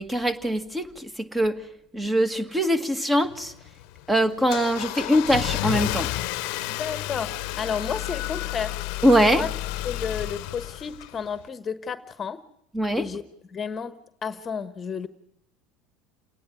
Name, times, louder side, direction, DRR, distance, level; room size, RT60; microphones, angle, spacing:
voice 1, 0.0-1.6 1.9-3.5 4.1-6.1 9.0-9.5 12.7-13.1, equal, 10° right, 1.9 m, -22 dB
Car / Engine starting, 3.2-11.4, left 17 dB, 70° left, 0.9 m, -31 dB
voice 2, 6.7-8.8 9.2-9.5 9.8-12.4 12.9-13.2 13.5-13.9 14.2-15.1, left 6 dB, 30° left, 1.3 m, -32 dB
29.0 x 10.5 x 9.9 m
supercardioid pair, 95°, 0 cm